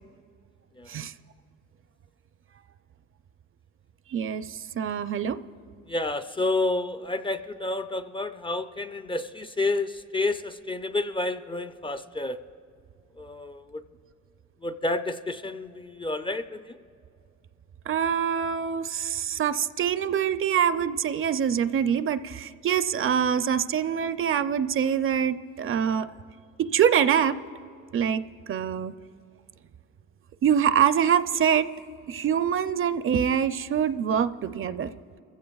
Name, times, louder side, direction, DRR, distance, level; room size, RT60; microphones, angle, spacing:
voice 1, 4.1-5.4 17.9-26.1 26.6-27.4 27.9-28.2 28.5-28.9 30.4-31.7 32.1-34.9, right 8 dB, 45° right, 12 dB, 0.5 m, -25 dB
voice 2, 5.9-12.4 13.2-13.8 14.6-16.8, left 2 dB, 15° left, 9 dB, 0.4 m, -30 dB
23.0 x 15.5 x 2.3 m, 2.4 s
cardioid pair, 90°, 30 cm